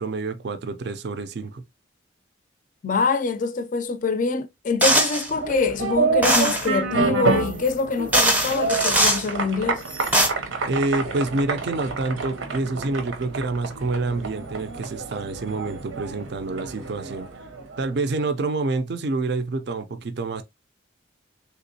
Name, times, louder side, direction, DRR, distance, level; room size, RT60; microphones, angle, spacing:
voice 1, 0.0-1.6 10.6-17.3 17.8-20.4, right 3 dB, 55° right, 0.4 m, -27 dB
voice 2, 2.8-9.8, left 4 dB, 40° left, 0.4 m, -25 dB
sound 1, 4.8-5.3 6.2-6.7 7.7-7.8 8.1-9.2 9.9-10.3, right 1 dB, 10° right, 0.6 m, -20 dB
sound 2, 5.3-18.0, right 4 dB, 85° right, 0.7 m, -28 dB
3.4 x 2.9 x 2.7 m
head